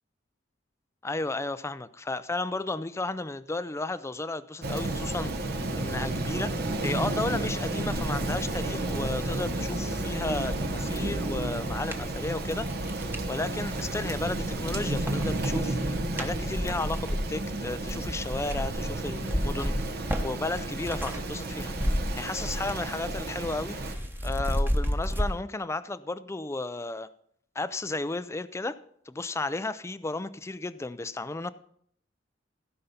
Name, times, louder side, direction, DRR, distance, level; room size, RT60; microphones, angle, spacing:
voice 1, 1.0-6.5 6.8-12.7 13.3-21.7 22.2-24.0 24.2-27.1 27.6-28.8 29.1-31.5, left 2 dB, 15° left, 13 dB, 0.4 m, -33 dB
Rain, 4.6-23.9, right 2 dB, 60° right, 1.1 m, -32 dB
sound 1, 7.4-13.3 13.9-14.5 14.8-21.2 21.5-22.9 23.2-25.3, equal, 10° right, 1.0 m, -33 dB
16.0 x 5.5 x 5.7 m, 0.65 s
head